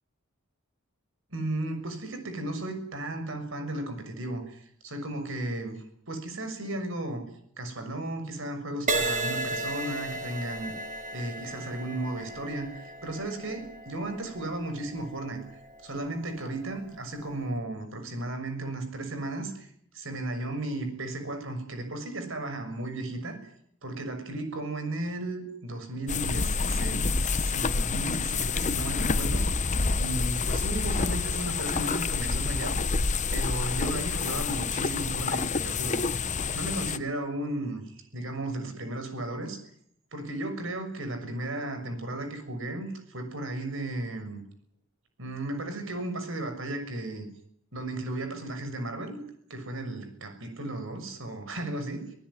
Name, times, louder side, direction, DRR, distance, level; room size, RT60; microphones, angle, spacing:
voice 1, 1.3-7.2 7.6-10.7 11.1-15.4 15.8-23.4 23.8-32.8 33.3-36.0 36.5-39.6 40.1-44.4 45.2-47.2 47.7-49.2 49.5-52.0, right 1 dB, 65° right, 7 dB, 6.5 m, -35 dB
Crash cymbal, 8.9-16.5 17.2-17.5, right 2 dB, 40° right, 3.0 m, -35 dB
sound 1, 26.1-37.0, left 4 dB, 35° left, 1.0 m, -28 dB
25.0 x 19.5 x 9.9 m, 0.69 s
head